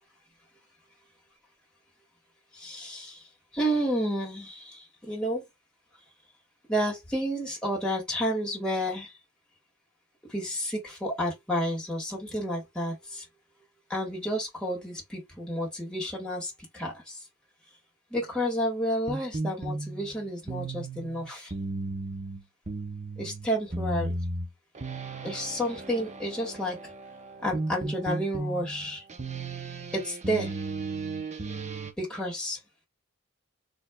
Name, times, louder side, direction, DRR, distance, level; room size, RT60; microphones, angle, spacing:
voice 1, 2.5-3.2 3.5-5.4 6.7-9.1 10.3-13.3 13.9-17.2 18.1-21.5 23.2-24.1 25.2-26.8 27.4-29.0 29.9-30.6 32.0-32.6, equal, 5° left, 2.1 m, -31 dB
sound 1, 19.1-31.9, right 2 dB, 35° right, 0.7 m, -35 dB
4.3 x 3.3 x 2.2 m
head